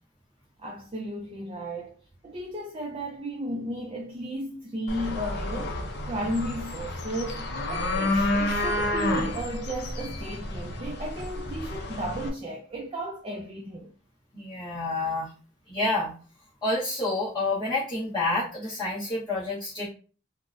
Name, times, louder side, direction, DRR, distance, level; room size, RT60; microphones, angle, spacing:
voice 1, 0.6-2.0 2.2-5.8 6.1-13.9, right 1 dB, 25° right, 0.3 m, -34 dB
sound 1, 4.9-12.3, left 1 dB, 50° left, 0.5 m, -30 dB
voice 2, 14.3-15.3 15.7-16.1 16.6-19.9, left 2 dB, 20° left, 1.0 m, -28 dB
3.7 x 2.0 x 2.5 m
head